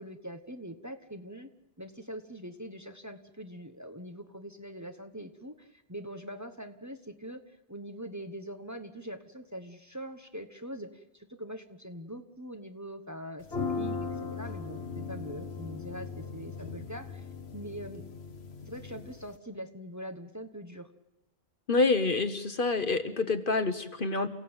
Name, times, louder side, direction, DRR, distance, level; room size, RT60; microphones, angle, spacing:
voice 1, 0.0-1.5 1.8-7.4 7.7-17.2 17.5-18.0 18.7-20.9, equal, 15° right, 7 dB, 1.2 m, -43 dB
sound 1, 13.4-19.3, left 4 dB, 70° left, 1.5 m, -38 dB
voice 2, 21.7-24.3, left 3 dB, 55° left, 10 dB, 1.3 m, -27 dB
29.0 x 16.5 x 8.9 m, 0.95 s
omnidirectional pair, 1.1 m